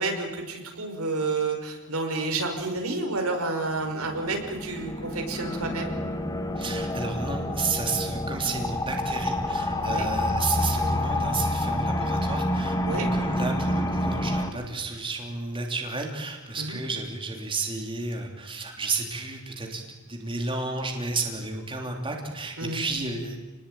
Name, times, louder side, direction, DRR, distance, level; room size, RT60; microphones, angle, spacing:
voice 1, 0.0-5.9 9.8-10.1 12.9-13.1 16.6-16.8 22.6-22.8, right 3 dB, 75° right, 3 dB, 5.6 m, -30 dB
sound 1, 3.8-14.5, left 1 dB, 15° left, 2.0 m, -28 dB
voice 2, 6.6-23.4, right 3 dB, 25° right, 1 dB, 3.3 m, -32 dB
29.5 x 20.5 x 9.1 m, 1.3 s
head